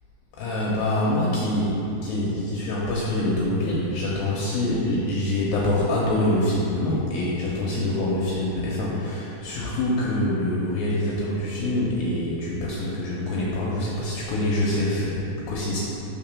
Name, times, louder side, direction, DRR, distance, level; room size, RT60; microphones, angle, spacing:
voice 1, 0.3-15.8, left 1 dB, 80° left, -5 dB, 2.2 m, -25 dB
5.8 x 3.6 x 5.9 m, 2.9 s
omnidirectional pair, 4.7 m